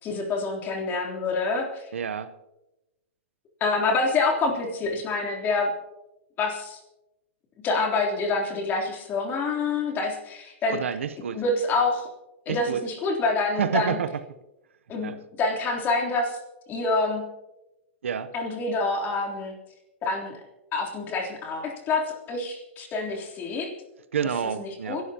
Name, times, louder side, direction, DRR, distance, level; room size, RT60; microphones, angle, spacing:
voice 1, 0.0-1.9 3.6-5.7 6.4-6.8 7.6-10.8 11.3-12.1 12.4-14.0 14.9-16.4 16.7-17.2 18.3-19.5 20.0-20.4 20.7-23.7 24.6-25.0, left 3 dB, 30° left, 0 dB, 3.4 m, -27 dB
voice 2, 1.9-2.3 10.7-11.4 12.5-12.8 13.6-14.2 15.0-15.2 18.0-18.3 24.1-25.0, right 7 dB, 90° right, 13 dB, 0.8 m, -29 dB
30.0 x 12.0 x 2.9 m, 0.98 s
hypercardioid pair, 130°, 7 cm